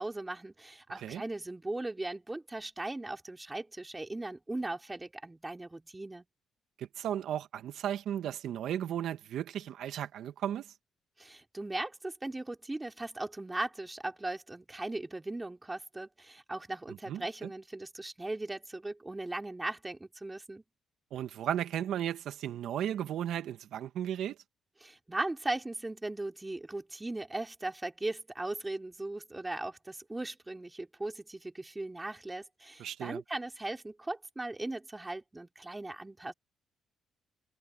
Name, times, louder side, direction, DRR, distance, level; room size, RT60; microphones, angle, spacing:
voice 1, 0.0-6.2 11.2-20.6 24.8-36.3, right 2 dB, 15° right, 3.7 m, -38 dB
voice 2, 6.8-10.7 16.9-17.5 21.1-24.4 32.8-33.2, right 10 dB, 75° right, 1.6 m, -35 dB
cardioid pair, 90°, 0 cm